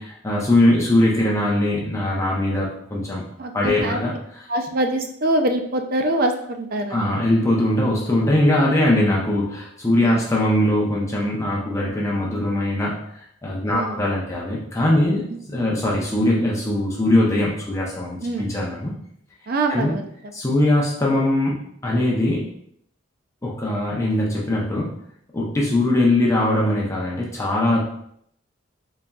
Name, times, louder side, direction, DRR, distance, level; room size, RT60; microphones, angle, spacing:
voice 1, 0.0-3.2 3.5-4.1 6.9-13.0 13.4-18.9 19.7-19.9 20.3-21.6 21.8-22.5 23.4-24.9 25.3-27.8, left 1 dB, 15° left, -4 dB, 0.6 m, -21 dB
voice 2, 3.4-4.0 4.5-7.0 10.0-10.2 13.6-14.0 15.3-15.4 18.2-18.5 19.5-20.1, right 1 dB, 50° right, 5 dB, 0.4 m, -24 dB
4.0 x 3.5 x 2.3 m, 0.69 s
head